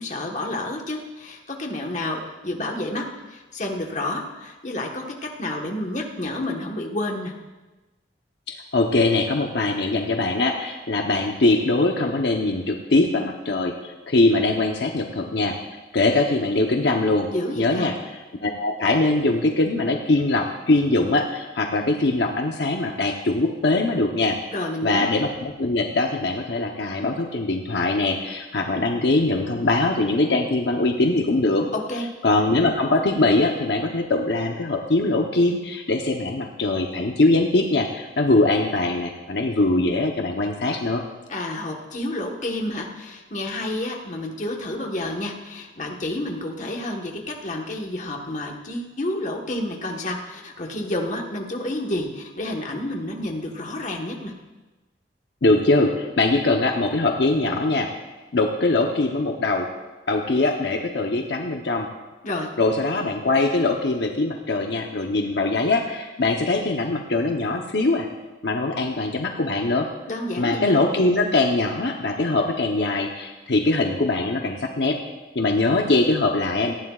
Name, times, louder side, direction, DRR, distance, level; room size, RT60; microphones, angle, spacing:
voice 1, 0.0-7.3 17.3-17.9 24.5-25.1 31.7-32.1 41.3-54.3 62.2-62.5 70.1-70.8, left 1 dB, 40° left, 1 dB, 1.3 m, -30 dB
voice 2, 8.5-15.6 15.9-17.3 17.6-17.9 18.4-24.4 24.8-31.7 32.2-41.0 55.4-57.9 58.3-59.7 60.1-61.9 62.6-68.1 68.4-69.9 70.4-75.0 75.3-76.7, left 2 dB, 65° left, 2 dB, 0.9 m, -22 dB
18.5 x 15.0 x 2.4 m, 1.1 s
head